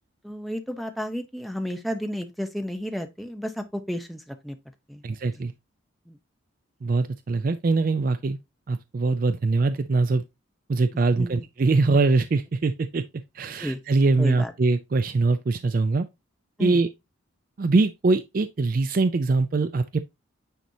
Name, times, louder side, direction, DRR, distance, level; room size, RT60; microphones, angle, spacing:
voice 1, 0.2-4.6 4.9-5.0 6.1-6.2 11.2-11.4 13.6-13.8 14.2-14.5 16.6-16.8, equal, ahead, 0.7 m, -32 dB
voice 2, 5.0-5.5 6.8-8.4 8.7-10.2 10.7-13.0 13.3-16.1 16.6-16.9 17.6-20.0, right 3 dB, 45° right, 0.4 m, -23 dB
9.2 x 4.2 x 2.7 m
head